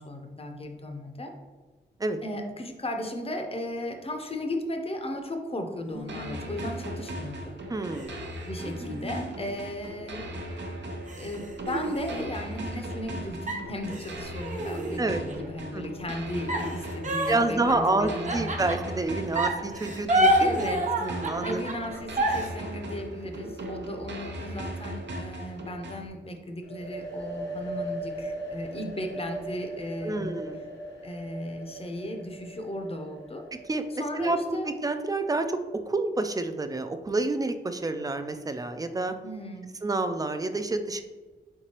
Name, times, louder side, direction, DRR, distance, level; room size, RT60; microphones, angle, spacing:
voice 1, 0.0-1.3 2.2-7.5 8.4-10.3 11.1-18.5 20.4-20.8 21.4-30.3 31.0-33.4 34.0-34.7 39.2-39.7, left 1 dB, 30° left, 4 dB, 0.6 m, -36 dB
sound 1, 5.9-7.2 7.9-10.1 10.6-10.7 11.1-13.1 13.5-15.5 16.5-19.0 19.3-22.5, right 1 dB, 40° right, 0.7 m, -29 dB
sound 2, 6.1-26.1, right 1 dB, 80° right, 0.7 m, -38 dB
voice 2, 7.7-8.2 15.0-15.2 15.7-15.8 17.3-20.7 21.0-21.6 30.0-30.6 33.7-39.1 39.8-41.0, right 2 dB, 20° right, 8 dB, 0.3 m, -28 dB
sound 3, 26.6-34.3, right 1 dB, 75° left, 0.9 m, -39 dB
4.5 x 3.8 x 2.9 m, 1.3 s
wide cardioid pair, 80°, 18 cm